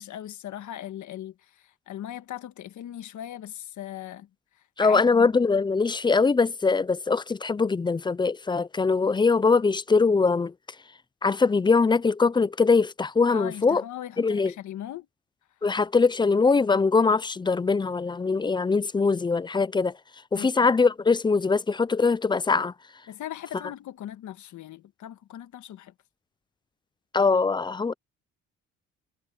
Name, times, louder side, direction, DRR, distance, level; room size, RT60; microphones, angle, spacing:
voice 1, 0.0-4.3 4.5-5.3 13.3-15.1 20.3-20.7 23.1-25.9, left 11 dB, 75° left, 1.6 m, -39 dB
voice 2, 4.8-10.5 11.2-13.8 14.2-14.5 15.6-20.0 20.3-22.7 27.1-27.9, left 4 dB, 15° left, 0.4 m, -22 dB
cardioid pair, 90°, 30 cm